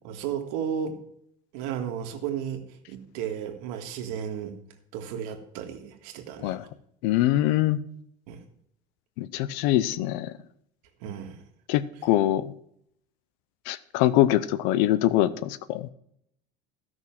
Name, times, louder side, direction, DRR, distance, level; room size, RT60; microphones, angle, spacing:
voice 1, 0.0-1.0 1.5-4.5 4.9-6.6 8.3-8.4 11.0-11.4, right 8 dB, 75° right, 4 dB, 1.8 m, -33 dB
voice 2, 7.0-7.8 9.2-10.3 11.7-12.5 13.7-15.9, left 14 dB, 65° left, 16 dB, 0.7 m, -23 dB
13.0 x 6.2 x 5.9 m, 0.73 s
cardioid pair, 180°, 19 cm